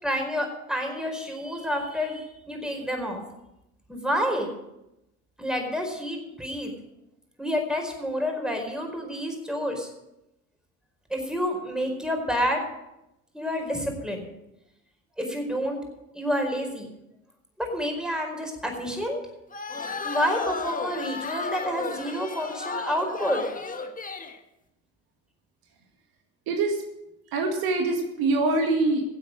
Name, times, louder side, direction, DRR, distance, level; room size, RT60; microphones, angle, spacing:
voice 1, 0.0-3.2 3.9-4.5 5.4-6.7 7.4-9.9 11.1-12.6 13.3-14.2 15.2-15.8 16.1-16.9 17.6-19.2 20.0-23.4, equal, ahead, 3 dB, 4.7 m, -29 dB
sound 1, 19.5-24.4, left 4 dB, 20° left, 1.6 m, -33 dB
voice 2, 26.5-26.8 27.3-29.0, right 3 dB, 60° right, 3 dB, 2.1 m, -24 dB
16.5 x 8.0 x 6.4 m, 0.90 s
hypercardioid pair, 70°, 41 cm